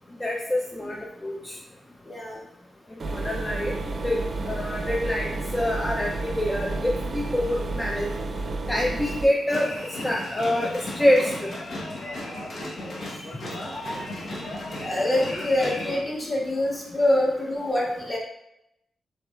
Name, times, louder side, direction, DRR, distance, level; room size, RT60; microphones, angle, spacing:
voice 1, 0.2-1.5 3.1-3.7 4.0-4.2 4.4-8.1 8.7-9.7 10.0-11.5, left 1 dB, 15° left, -1 dB, 0.5 m, -26 dB
voice 2, 2.0-2.5 4.0-4.1 12.6-13.0 14.7-18.2, left 1 dB, 35° left, -5 dB, 1.6 m, -26 dB
sound 1, 3.0-9.2, right 2 dB, 45° right, 0.6 m, -31 dB
sound 2, 9.5-16.0, left 1 dB, 65° left, 1.2 m, -34 dB
6.8 x 3.2 x 2.4 m, 0.82 s
cardioid pair, 100°, 0 cm